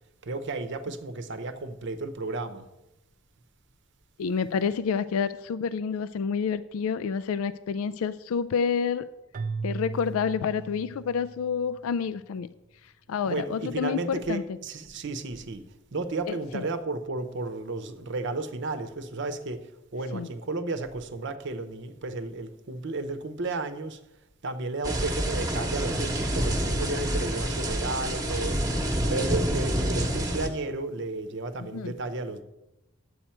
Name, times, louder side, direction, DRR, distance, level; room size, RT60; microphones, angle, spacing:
voice 1, 0.2-2.7 13.3-24.0 24.4-28.6 29.1-32.4, right 3 dB, 60° right, 0.8 m, -33 dB
voice 2, 4.2-9.1 9.6-12.5 12.8-14.4 16.3-16.7 20.1-20.3 31.6-31.9, left 6 dB, 85° left, 0.3 m, -29 dB
Keyboard (musical), 9.3-11.6, right 4 dB, 40° right, 0.3 m, -36 dB
sound 1, 24.8-30.5, right 1 dB, 20° right, 1.0 m, -28 dB
10.0 x 7.9 x 4.4 m
head